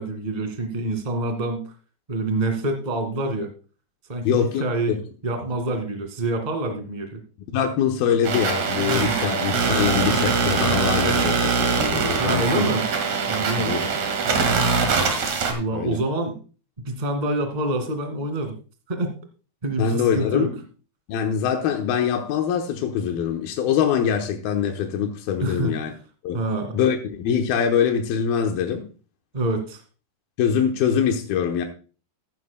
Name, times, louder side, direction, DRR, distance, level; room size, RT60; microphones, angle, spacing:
voice 1, 0.0-1.7 2.1-3.5 4.1-4.9 5.2-7.2 9.0-9.2 12.2-12.9 13.3-13.9 15.5-16.4 16.8-18.5 18.9-19.1 19.6-20.5 25.4-25.7 26.3-26.8 29.3-29.8, right 2 dB, 20° right, 1.3 m, -26 dB
voice 2, 4.2-5.0 7.5-12.7 13.4-13.8 15.7-16.0 19.8-20.6 21.1-25.9 26.2-26.4 26.7-28.8 30.4-31.7, left 8 dB, 90° left, 2.9 m, -24 dB
sound 1, 8.2-15.5, right 5 dB, 55° right, 3.0 m, -22 dB
14.5 x 12.5 x 2.2 m
omnidirectional pair, 4.2 m